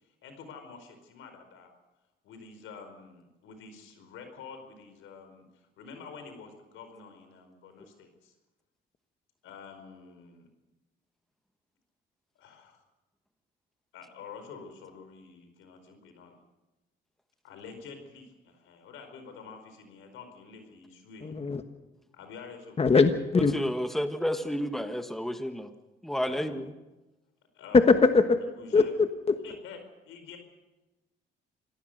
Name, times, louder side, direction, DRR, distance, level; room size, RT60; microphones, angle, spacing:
voice 1, 0.2-1.7 2.2-5.4 5.8-8.3 9.4-10.5 12.4-12.8 13.9-16.4 17.4-21.4 22.1-22.8 26.2-26.6 27.5-27.9 28.6-28.9 29.4-29.8 30.1-30.4, left 5 dB, 90° left, 7 dB, 4.7 m, -47 dB
voice 2, 21.2-21.6 22.8-23.5 27.7-28.4 28.7-29.4, left 4 dB, 30° left, 8 dB, 1.3 m, -21 dB
voice 3, 23.3-25.7 26.0-26.7, equal, ahead, 8 dB, 1.5 m, -31 dB
26.0 x 17.5 x 6.6 m, 1.1 s
cardioid pair, 90°, 20 cm